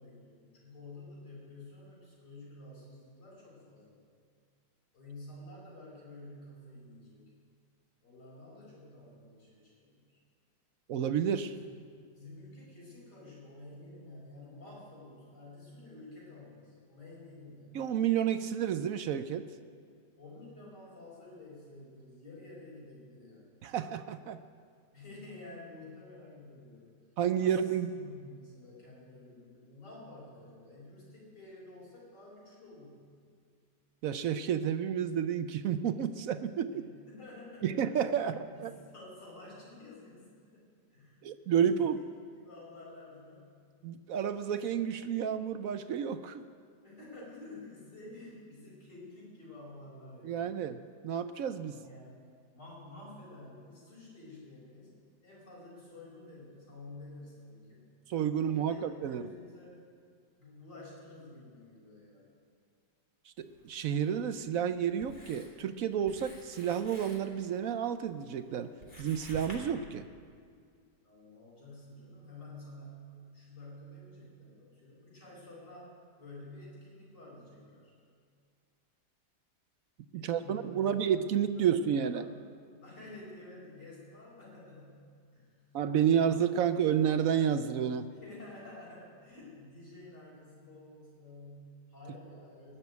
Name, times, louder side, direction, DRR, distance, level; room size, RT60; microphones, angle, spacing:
voice 1, 0.0-4.0 4.9-7.3 8.0-10.2 11.5-11.6 11.9-17.8 20.2-23.6 24.9-26.9 27.4-33.1 36.7-37.8 38.2-42.1 42.4-43.6 46.8-50.5 51.6-52.2 52.5-54.9 55.2-57.8 58.3-59.8 60.4-62.3 71.0-75.9 76.2-77.9 80.1-81.0 81.6-82.4 82.8-85.6 85.9-86.7 88.1-92.8, left 2 dB, 70° left, -10 dB, 5.2 m, -50 dB
voice 2, 10.9-11.6 17.7-19.4 23.6-24.4 27.2-27.9 34.0-36.9 37.6-38.7 41.2-42.0 43.8-46.4 50.2-51.8 58.1-59.2 63.4-68.7 69.0-70.1 80.1-82.2 85.7-88.1, right 8 dB, 70° right, 11 dB, 0.8 m, -30 dB
Writing, 63.4-69.6, equal, 25° left, 2.8 m, -53 dB
20.0 x 7.2 x 9.3 m, 2.2 s
omnidirectional pair, 1.9 m